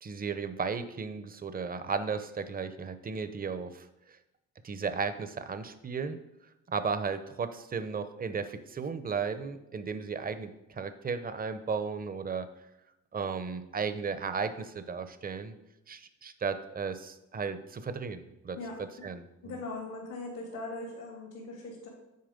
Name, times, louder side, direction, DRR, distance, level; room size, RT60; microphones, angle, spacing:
voice 1, 0.0-3.9 4.6-6.2 6.7-12.5 13.1-15.6 15.9-18.6 19.0-19.6, right 5 dB, 30° right, 11 dB, 0.7 m, -35 dB
voice 2, 19.4-21.9, left 2 dB, 85° left, -6 dB, 2.7 m, -40 dB
9.5 x 4.6 x 5.1 m, 0.91 s
cardioid pair, 90°, 30 cm